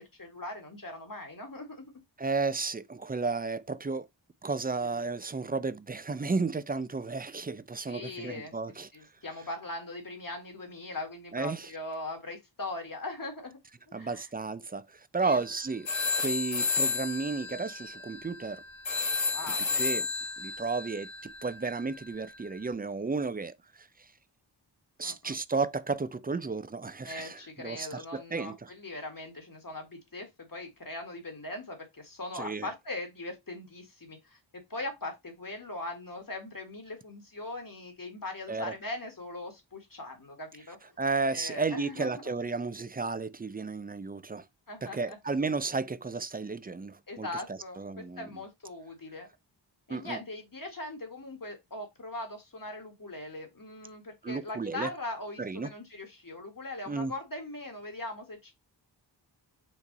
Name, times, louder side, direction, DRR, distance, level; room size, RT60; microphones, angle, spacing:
voice 1, 0.0-1.9 4.9-5.0 7.9-8.5 8.9-13.6 13.9-14.3 15.2-15.4 19.2-20.1 25.0-25.4 27.0-34.4 34.7-40.9 41.3-42.1 44.7-45.2 47.1-49.3 49.9-58.5, left 2 dB, 50° left, 1.9 m, -40 dB
voice 2, 2.2-4.1 4.4-8.9 11.3-11.7 13.9-15.9 16.2-18.6 19.8-20.1 20.4-23.9 25.0-28.7 32.3-32.7 38.5-38.7 41.0-44.4 44.8-48.3 49.9-50.2 54.2-54.9 55.4-55.7 56.9-57.1, right 4 dB, 20° right, 0.4 m, -33 dB
sound 1, 15.2-15.5 15.8-22.5, left 4 dB, 85° left, 1.0 m, -32 dB
4.6 x 2.6 x 4.0 m
wide cardioid pair, 45°, 44 cm